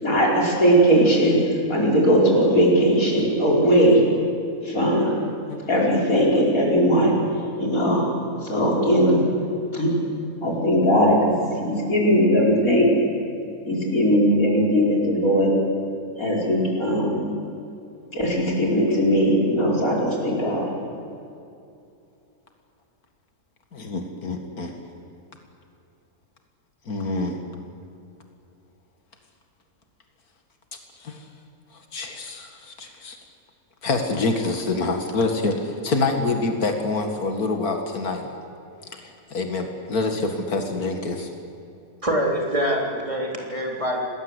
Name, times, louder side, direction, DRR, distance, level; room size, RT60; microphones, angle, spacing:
voice 1, 0.0-4.0 4.6-5.2 5.7-7.2 7.6-8.1 8.4-9.2 9.7-9.9 10.4-12.9 13.6-15.5 16.2-17.2 18.1-20.8, equal, 70° left, -2 dB, 5.5 m, -19 dB
voice 2, 23.7-24.8 26.9-27.4 31.0-31.2 31.9-33.2 33.8-38.3 38.9-41.3, left 3 dB, 85° left, 4 dB, 2.4 m, -26 dB
voice 3, 42.0-44.0, equal, 20° right, -1 dB, 3.7 m, -25 dB
27.5 x 19.5 x 8.2 m, 2.6 s
omnidirectional pair, 1.5 m